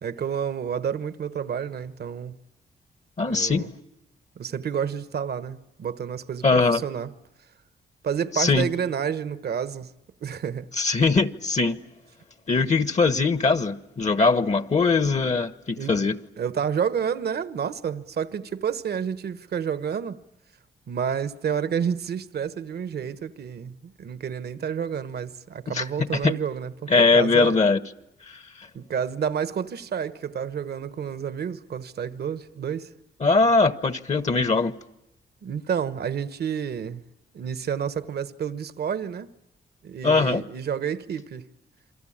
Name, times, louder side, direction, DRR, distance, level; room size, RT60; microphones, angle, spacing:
voice 1, 0.0-2.4 3.3-3.7 4.4-7.1 8.0-9.9 10.2-10.7 15.8-16.0 16.4-20.2 20.9-27.6 28.7-32.9 35.4-37.0 37.3-39.3 39.8-41.5, right 7 dB, 65° right, 1.2 m, -30 dB
voice 2, 3.2-3.6 6.4-6.8 8.4-8.7 10.8-11.8 12.5-16.2 25.7-25.8 26.2-26.3 26.9-27.8 28.3-28.4 33.2-34.7 40.0-40.4, left 4 dB, 40° left, 1.2 m, -21 dB
28.0 x 24.0 x 8.8 m
cardioid pair, 60°, 18 cm